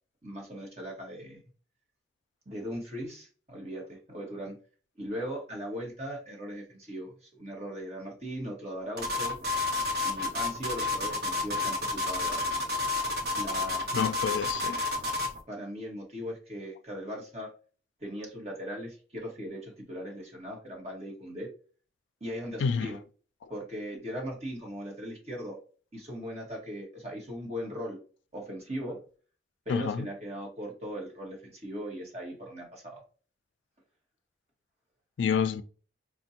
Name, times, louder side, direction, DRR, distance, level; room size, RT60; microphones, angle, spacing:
voice 1, 0.2-1.4 2.4-4.5 5.0-9.4 10.0-12.4 13.3-14.0 15.5-17.5 18.0-21.5 22.2-23.0 23.5-25.6 25.9-28.0 28.3-29.0 29.6-33.0, equal, 35° right, 1.3 m, -39 dB
sound 1, 9.0-15.4, left 3 dB, 60° right, 1.0 m, -30 dB
voice 2, 13.9-14.8 22.6-22.9 29.7-30.1 35.2-35.6, left 6 dB, 90° left, 0.3 m, -28 dB
4.2 x 2.2 x 2.8 m
head